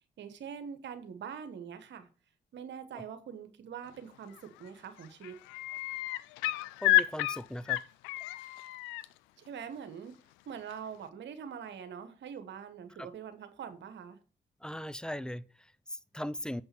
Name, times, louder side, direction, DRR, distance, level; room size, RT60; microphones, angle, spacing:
voice 1, 0.2-2.1 2.5-5.4 9.4-10.2 10.5-14.2, right 7 dB, 70° right, 1.4 m, -44 dB
sound 1, 4.3-4.7 5.0-9.0 10.7-10.8, left 15 dB, 85° left, 0.4 m, -30 dB
voice 2, 6.8-7.8 13.0-13.1 14.6-16.6, equal, 5° left, 0.7 m, -39 dB
7.7 x 5.4 x 5.9 m
hypercardioid pair, 40°, 20 cm